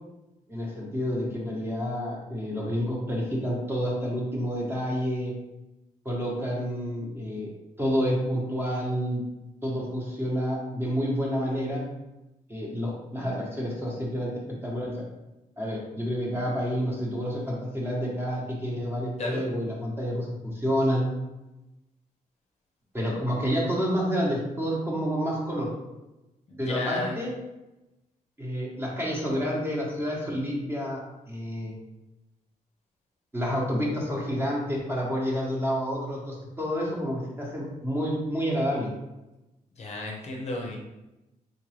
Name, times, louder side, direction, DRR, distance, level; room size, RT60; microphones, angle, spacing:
voice 1, 0.5-5.3 6.0-7.5 7.8-9.2 9.6-11.8 12.5-14.9 15.6-21.0 22.9-25.7 26.6-27.3 28.4-31.0 31.3-31.7 33.3-38.9, equal, 15° right, -4 dB, 1.0 m, -29 dB
voice 2, 26.5-27.2 39.8-40.8, left 2 dB, 50° left, 0 dB, 0.6 m, -32 dB
3.8 x 2.5 x 3.1 m, 0.98 s
cardioid pair, 125°, 14 cm